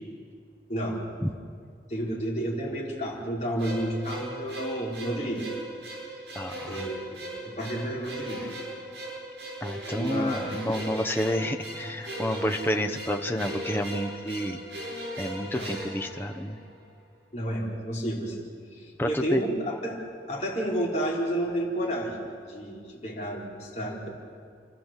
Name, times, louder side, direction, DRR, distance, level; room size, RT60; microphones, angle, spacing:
voice 1, 0.7-1.0 1.9-5.5 6.7-8.5 9.9-10.7 15.5-15.7 17.3-20.0 20.3-24.1, right 1 dB, 40° left, -3 dB, 4.4 m, -31 dB
sound 1, 3.6-16.8, right 1 dB, 75° right, 7.8 m, -38 dB
voice 2, 6.3-6.9 9.6-14.6 15.2-16.6 19.0-19.4, left 1 dB, 10° left, 4 dB, 1.1 m, -29 dB
29.0 x 14.0 x 7.6 m, 2.1 s
head